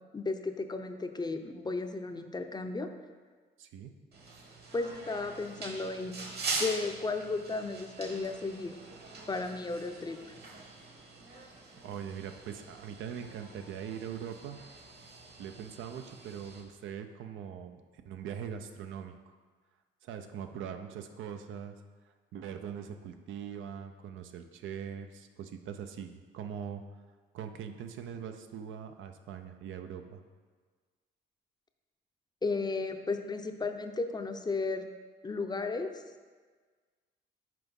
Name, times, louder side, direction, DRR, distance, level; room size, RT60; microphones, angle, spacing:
voice 1, 0.1-2.9 4.7-6.2 6.6-8.8 9.3-10.2 32.4-34.9 35.2-35.9, left 3 dB, 20° left, 7 dB, 0.5 m, -34 dB
voice 2, 3.6-3.9 11.3-11.4 11.8-14.6 15.4-19.3 20.0-21.8 22.3-26.8 27.3-30.2, right 8 dB, 80° right, 7 dB, 0.6 m, -42 dB
sound 1, 4.1-16.6, right 3 dB, 55° right, 1.5 m, -43 dB
6.0 x 4.8 x 5.3 m, 1.5 s
cardioid pair, 90°, 20 cm